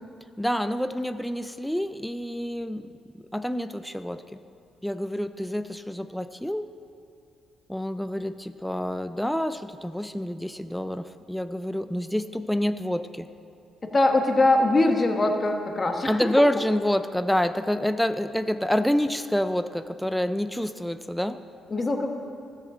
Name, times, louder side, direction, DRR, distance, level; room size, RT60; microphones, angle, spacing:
voice 1, 0.4-2.9 3.3-4.4 4.8-6.7 7.7-13.3 16.1-21.4, equal, 5° left, 10 dB, 0.3 m, -27 dB
voice 2, 13.9-16.2 21.7-22.1, left 2 dB, 30° left, 4 dB, 1.1 m, -22 dB
13.5 x 4.9 x 7.1 m, 2.5 s
cardioid pair, 90°, 0 cm